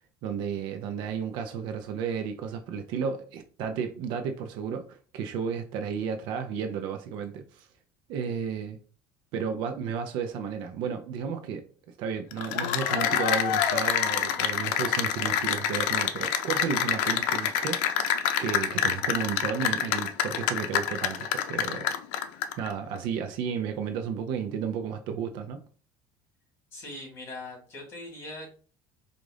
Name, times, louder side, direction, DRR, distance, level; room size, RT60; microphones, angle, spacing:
voice 1, 0.2-7.7 8.1-8.8 9.3-18.1 18.4-21.9 22.6-25.6, right 7 dB, 65° right, 0.5 m, -33 dB
Cheering / Applause, 12.3-22.7, left 9 dB, 85° left, 0.5 m, -27 dB
voice 2, 26.7-28.5, left 2 dB, 30° left, 2.4 m, -41 dB
4.9 x 2.5 x 3.8 m
cardioid pair, 160°, 9 cm